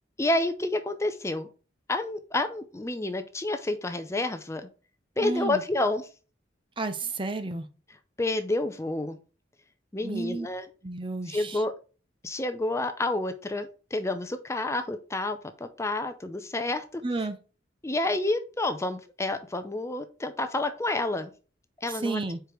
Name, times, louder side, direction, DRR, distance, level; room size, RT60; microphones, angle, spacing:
voice 1, 0.2-1.5 1.9-4.7 5.2-6.1 8.2-9.2 9.9-10.7 11.3-11.7 12.2-17.0 17.8-21.3 21.8-22.2, left 2 dB, 15° left, 0.5 m, -29 dB
voice 2, 5.2-5.6 6.8-7.7 10.0-10.5 10.8-11.6 17.0-17.4 22.0-22.4, right 3 dB, 30° right, 0.7 m, -31 dB
5.0 x 4.6 x 4.9 m
head